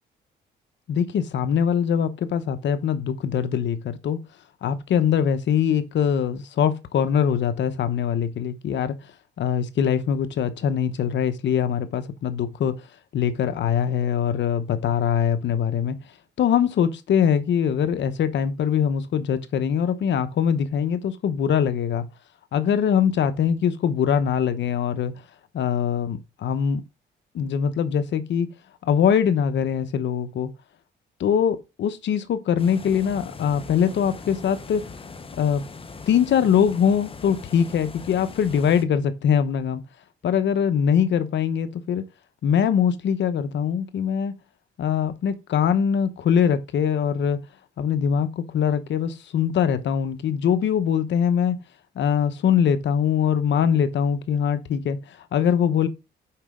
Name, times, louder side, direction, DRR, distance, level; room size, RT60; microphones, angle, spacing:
voice 1, 0.9-4.2 4.6-8.9 9.4-12.7 13.1-16.0 16.4-22.0 22.5-25.1 25.5-26.8 27.3-28.5 28.9-30.5 31.2-34.9 35.4-35.6 36.1-39.8 40.2-42.0 42.4-44.3 44.8-47.4 47.8-51.6 52.0-55.0 55.3-55.9, left 8 dB, 65° left, 1.0 m, -22 dB
sound 1, 32.6-38.8, left 4 dB, 25° left, 0.9 m, -40 dB
7.1 x 5.2 x 3.7 m
cardioid pair, 90°, 20 cm